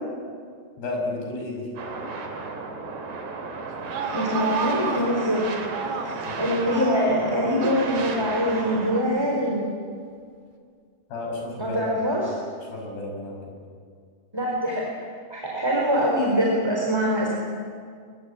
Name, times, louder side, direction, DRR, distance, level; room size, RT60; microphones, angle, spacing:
voice 1, 0.8-1.7 6.3-6.4 11.1-11.8 12.7-13.5, left 2 dB, 80° left, 1 dB, 7.9 m, -32 dB
sound 1, 1.8-9.0, right 4 dB, 90° right, 5.4 m, -33 dB
sound 2, 3.7-6.3 6.7-7.9 8.5-9.5, right 6 dB, 70° right, 4.3 m, -32 dB
voice 2, 4.1-5.5 6.0-9.6 11.6-12.4 14.3-14.9 15.3-17.3, equal, 5° right, -2 dB, 3.6 m, -24 dB
23.0 x 22.5 x 8.6 m, 2.1 s
omnidirectional pair, 4.6 m